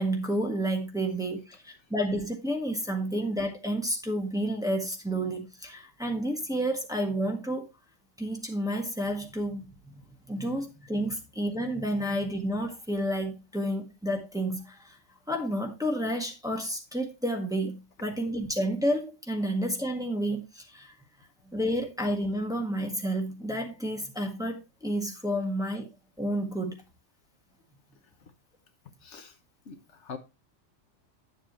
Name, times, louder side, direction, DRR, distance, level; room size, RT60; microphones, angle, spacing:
voice 1, 0.0-7.7 8.2-10.0 10.3-15.0 15.3-20.9 21.5-25.9 26.2-26.8, right 1 dB, 5° right, 1.5 m, -30 dB
voice 2, 29.0-29.4 29.6-30.2, left 5 dB, 70° left, 1.3 m, -43 dB
9.8 x 7.3 x 3.1 m
omnidirectional pair, 1.3 m